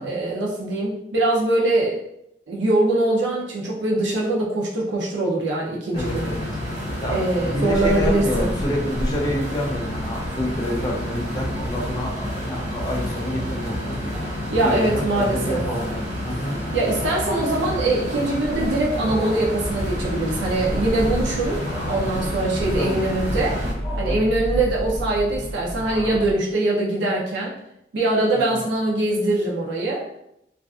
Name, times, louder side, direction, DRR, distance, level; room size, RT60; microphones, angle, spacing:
voice 1, 0.0-2.0 2.5-6.3 7.1-8.5 14.5-15.6 16.7-23.6 24.0-27.5 27.9-30.0, right 2 dB, 85° right, -4 dB, 0.5 m, -22 dB
voice 2, 5.9-6.5 7.0-16.6 22.8-23.2 24.0-24.3 28.3-28.6, left 1 dB, 20° left, -2 dB, 0.4 m, -28 dB
sound 1, 5.9-23.7, equal, 45° right, 1.3 m, -29 dB
sound 2, 12.6-13.1 13.5-13.7 14.1-14.3 15.0-15.1 15.4-16.1 16.8-17.4 18.8-19.5 20.5-21.1 21.5-22.2 22.6-23.2 23.8-24.3 24.6-25.3 25.7-26.3, equal, 60° right, 1.0 m, -37 dB
sound 3, 19.6-26.3, equal, 30° right, 0.6 m, -30 dB
2.4 x 2.3 x 2.3 m, 0.79 s
head